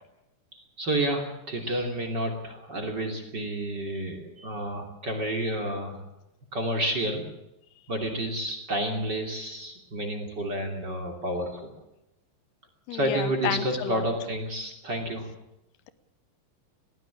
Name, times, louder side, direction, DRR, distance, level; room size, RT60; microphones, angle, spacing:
voice 1, 0.5-6.0 6.5-7.2 7.9-11.7 12.9-15.3, right 1 dB, 30° right, 3 dB, 2.9 m, -30 dB
voice 2, 12.9-14.1, left 11 dB, 80° left, 13 dB, 3.0 m, -31 dB
20.5 x 15.5 x 8.7 m, 0.89 s
omnidirectional pair, 4.6 m